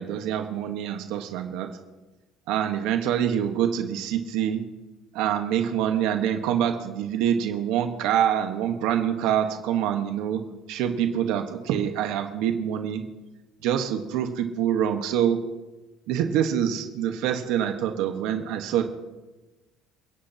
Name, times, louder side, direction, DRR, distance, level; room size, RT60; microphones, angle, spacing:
voice 1, 0.0-1.7 2.5-4.6 5.1-10.4 10.7-13.0 13.6-15.4 16.1-18.8, right 9 dB, 75° right, 5 dB, 1.2 m, -25 dB
29.0 x 10.0 x 2.9 m, 1.1 s
cardioid pair, 150°, 0 cm